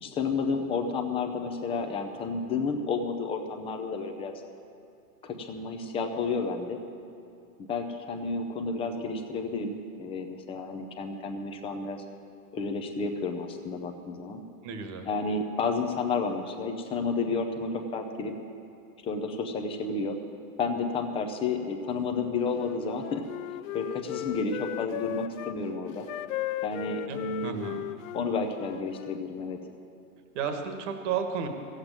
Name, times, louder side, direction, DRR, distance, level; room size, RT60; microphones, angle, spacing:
voice 1, 0.0-4.3 5.2-6.8 7.7-12.0 12.5-14.4 15.1-18.3 19.0-20.2 20.6-23.2 23.7-26.1 26.6-27.7 28.1-29.6, left 4 dB, 15° left, 4 dB, 0.5 m, -31 dB
voice 2, 14.6-15.1 27.1-27.9 30.3-31.5, right 6 dB, 50° right, 6 dB, 1.5 m, -33 dB
Wind instrument woodwind instrument, 22.4-25.6 26.0-29.2, left 14 dB, 60° left, 0.5 m, -36 dB
14.5 x 8.1 x 8.7 m, 2.6 s
supercardioid pair, 145°, 45 cm